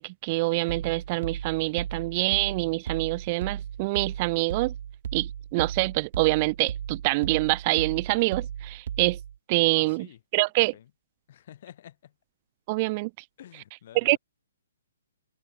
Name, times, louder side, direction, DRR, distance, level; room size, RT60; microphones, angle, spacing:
voice 1, 0.0-4.7 5.1-9.2 9.5-10.1 10.3-10.7 12.7-13.1 14.0-14.2, right 24 dB, 35° right, 0.3 m, -25 dB
sound 1, 0.7-9.4, right 9 dB, 55° right, 7.9 m, -36 dB
voice 2, 9.8-10.2 10.6-10.9 11.3-12.1 13.4-14.2, left 11 dB, 50° left, 5.9 m, -49 dB
hypercardioid pair, 135°, 0 cm